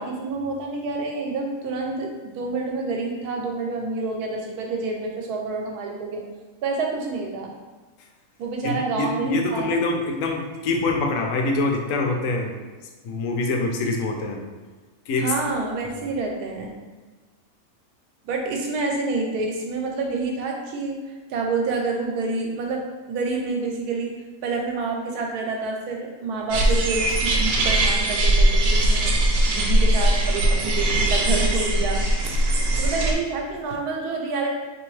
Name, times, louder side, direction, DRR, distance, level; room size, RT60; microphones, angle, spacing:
voice 1, 0.0-6.2 6.6-7.5 8.4-9.8 15.2-16.7 18.2-24.1 24.4-29.1 29.5-32.0 32.8-34.5, right 3 dB, 85° right, 1 dB, 1.2 m, -28 dB
voice 2, 8.6-12.5 13.0-14.4 15.1-15.3, left 3 dB, 70° left, 2 dB, 0.9 m, -25 dB
sound 1, 26.5-33.1, right 1 dB, 70° right, 1.0 m, -20 dB
3.4 x 2.9 x 3.1 m, 1.3 s
omnidirectional pair, 1.6 m